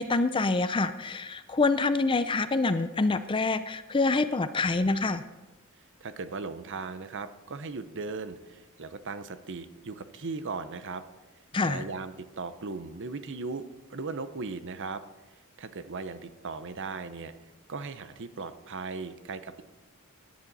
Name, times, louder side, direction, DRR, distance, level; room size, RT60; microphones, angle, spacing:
voice 1, 0.0-5.2 11.5-11.8, left 3 dB, 25° left, 12 dB, 0.5 m, -26 dB
voice 2, 6.0-11.0 11.6-15.0 15.6-17.3 17.7-19.6, right 4 dB, 55° right, 12 dB, 0.8 m, -37 dB
17.0 x 10.5 x 4.1 m, 1.1 s
head